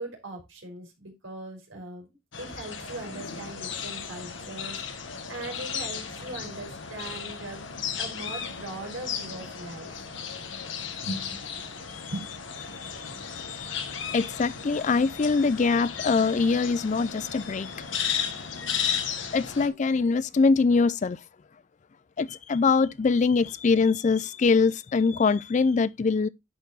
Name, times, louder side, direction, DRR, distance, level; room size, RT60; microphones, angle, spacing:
voice 1, 0.0-2.1 2.4-7.6 8.0-9.9 11.3-11.4, right 2 dB, 70° right, 3.8 m, -40 dB
sound 1, 2.3-19.7, left 7 dB, 65° left, 1.3 m, -35 dB
voice 2, 12.7-17.9 18.4-18.5 19.3-21.2 22.2-26.3, left 4 dB, 35° left, 0.3 m, -24 dB
11.0 x 4.4 x 3.9 m
head